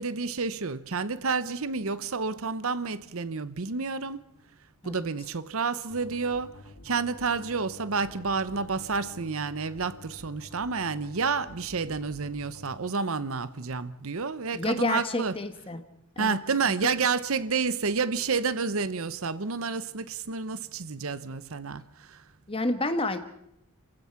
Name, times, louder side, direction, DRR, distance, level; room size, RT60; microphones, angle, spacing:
voice 1, 0.0-4.3 4.8-6.5 6.8-15.3 16.2-22.2, right 4 dB, 70° right, 0.8 m, -30 dB
sound 1, 5.9-12.7, left 1 dB, 85° left, 2.0 m, -49 dB
voice 2, 14.5-15.8 16.2-16.4 22.5-23.2, left 2 dB, 25° left, 1.3 m, -29 dB
29.0 x 16.0 x 5.9 m
head